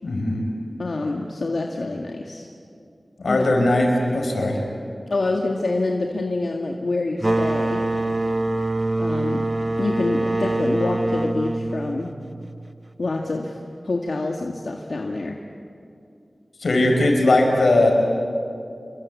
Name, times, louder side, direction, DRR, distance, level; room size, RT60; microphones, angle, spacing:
voice 1, 0.0-0.5 3.2-4.6 16.6-17.9, left 2 dB, 90° left, 2 dB, 5.4 m, -19 dB
voice 2, 0.8-2.5 3.2-3.5 5.1-7.8 9.0-9.5 9.8-12.1 13.0-13.6 13.8-15.4, left 2 dB, 75° left, 1 dB, 1.8 m, -26 dB
sound 1, 7.2-12.6, right 2 dB, 30° right, 1.1 m, -24 dB
28.5 x 23.5 x 8.5 m, 2.5 s
wide cardioid pair, 65°, 0 cm